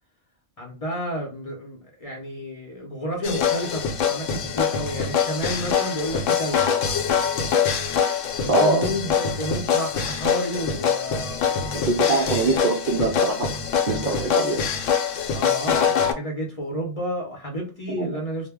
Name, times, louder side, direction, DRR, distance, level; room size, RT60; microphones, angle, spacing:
voice 1, 0.6-7.0 8.4-12.3 15.3-18.5, equal, 35° left, 0.6 m, -31 dB
sound 1, 3.2-16.1, left 7 dB, 75° left, 0.9 m, -24 dB
voice 2, 8.5-8.9 11.7-13.6 13.9-14.6 17.9-18.2, right 3 dB, 65° right, 0.5 m, -23 dB
2.2 x 2.0 x 3.4 m
omnidirectional pair, 1.3 m